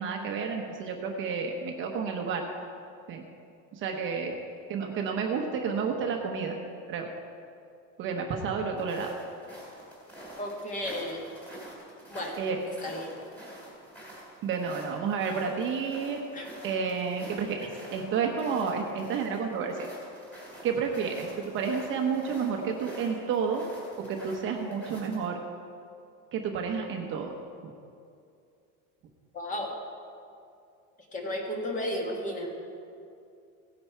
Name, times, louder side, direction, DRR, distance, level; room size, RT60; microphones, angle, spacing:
voice 1, 0.0-2.4 3.1-3.2 3.7-4.4 4.7-6.6 6.9-7.1 8.0-9.1 12.4-12.6 14.4-16.2 16.6-19.9 20.6-23.6 24.0-25.4 26.3-27.3, right 6 dB, 30° right, 2 dB, 1.0 m, -30 dB
sound 1, 8.8-25.3, right 1 dB, 5° left, 3.1 m, -47 dB
voice 2, 10.4-11.3 12.1-12.3 12.8-13.1 16.3-16.5 29.3-29.7 31.1-32.5, left 1 dB, 20° left, 1 dB, 1.7 m, -33 dB
16.5 x 10.0 x 4.6 m, 2.5 s
cardioid pair, 170°, 37 cm